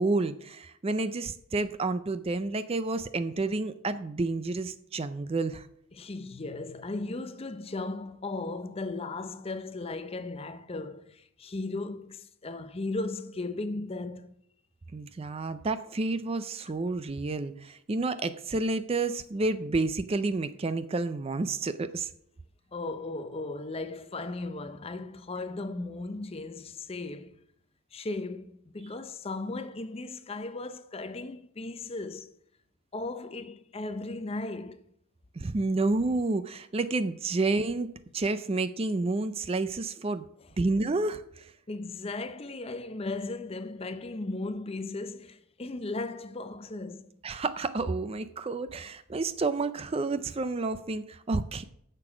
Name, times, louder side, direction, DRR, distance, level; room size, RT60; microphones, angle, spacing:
voice 1, 0.0-5.7 14.9-22.1 35.4-37.9 38.1-40.2 40.6-41.5 47.2-51.6, right 3 dB, 25° right, 0.4 m, -30 dB
voice 2, 5.9-14.3 22.7-27.4 27.9-32.3 32.9-34.8 41.7-47.2, left 2 dB, 25° left, 0.5 m, -36 dB
9.7 x 6.8 x 6.0 m
head